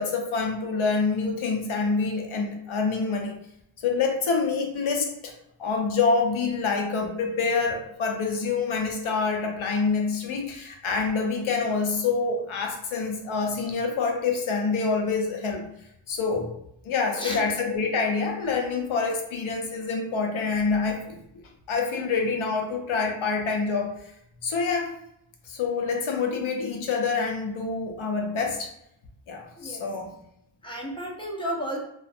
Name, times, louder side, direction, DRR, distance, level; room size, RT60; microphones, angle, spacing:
voice 1, 0.0-3.3 3.8-5.3 5.6-15.6 16.1-16.5 16.8-21.2 21.7-23.9 24.4-24.9 25.5-28.7 29.3-30.1, left 4 dB, 70° left, 1 dB, 0.6 m, -26 dB
voice 2, 30.6-31.8, equal, 10° left, -3 dB, 0.5 m, -32 dB
2.4 x 2.1 x 2.5 m, 0.77 s
wide cardioid pair, 120°, 49 cm